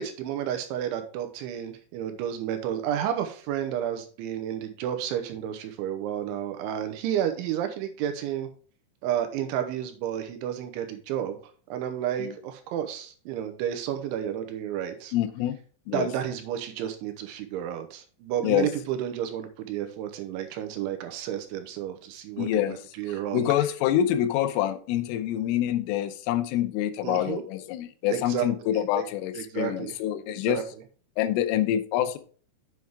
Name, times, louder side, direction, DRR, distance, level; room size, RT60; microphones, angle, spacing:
voice 1, 0.0-8.5 9.0-11.4 11.7-15.1 15.9-23.5 27.0-27.4 28.1-29.0 29.3-30.0 30.4-30.8, right 10 dB, 80° right, 7 dB, 3.1 m, -31 dB
voice 2, 15.1-15.6 15.9-16.1 18.4-18.7 22.4-22.8 23.3-30.6 31.2-32.2, left 11 dB, 85° left, 11 dB, 3.3 m, -26 dB
7.9 x 7.5 x 3.5 m, 0.41 s
omnidirectional pair, 5.7 m